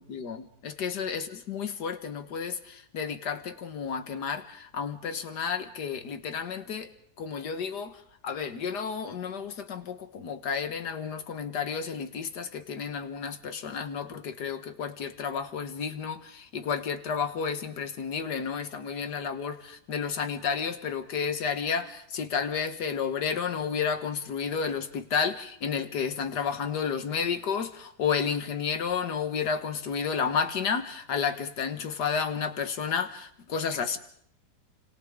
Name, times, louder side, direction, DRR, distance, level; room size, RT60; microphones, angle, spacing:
voice 1, 0.0-6.9 7.2-8.0 8.2-34.0, left 6 dB, 85° left, 9 dB, 1.9 m, -31 dB
29.5 x 26.0 x 3.8 m, 0.64 s
omnidirectional pair, 1.7 m